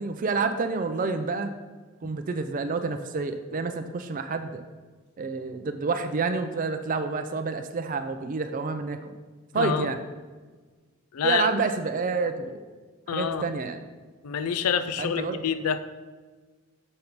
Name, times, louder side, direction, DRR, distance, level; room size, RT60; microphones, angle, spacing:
voice 1, 0.0-1.5 2.0-4.6 5.2-9.1 9.5-10.0 11.2-12.6 13.1-13.8 15.0-15.4, right 4 dB, 40° right, 8 dB, 0.4 m, -28 dB
voice 2, 9.5-9.9 11.1-11.5 13.1-13.4 14.2-15.8, left 7 dB, 90° left, 12 dB, 0.4 m, -27 dB
6.5 x 5.4 x 4.5 m, 1.4 s
head